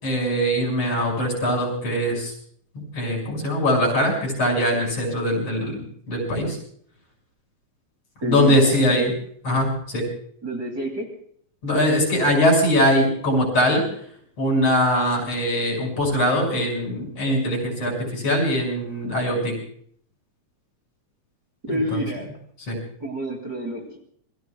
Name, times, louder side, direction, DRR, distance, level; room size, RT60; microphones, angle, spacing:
voice 1, 0.0-2.3 2.9-6.6 8.2-9.1 9.4-10.0 11.6-13.8 14.4-19.6 21.7-22.0 22.7-22.8, equal, 45° left, 0 dB, 6.4 m, -22 dB
voice 2, 8.2-9.1 10.4-11.1 21.6-22.3 23.0-24.0, right 1 dB, 30° right, 0 dB, 2.7 m, -29 dB
27.5 x 22.5 x 2.3 m, 0.62 s
omnidirectional pair, 3.7 m